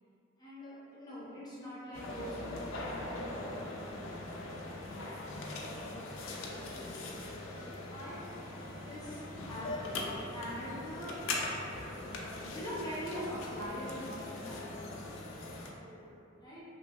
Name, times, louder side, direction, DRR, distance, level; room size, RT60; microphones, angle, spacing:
voice 1, 0.4-4.0 6.7-7.0 7.9-11.1 12.1-15.0 16.4-16.6, equal, 20° left, -9 dB, 0.5 m, -43 dB
sound 1, 1.9-15.7, left 2 dB, 75° left, 0.4 m, -41 dB
voice 2, 5.7-7.5 15.8-16.2, equal, 90° right, -5 dB, 0.6 m, -55 dB
sound 2, 6.9-14.8, equal, 35° right, 0.6 m, -61 dB
2.9 x 2.6 x 2.3 m, 2.6 s
head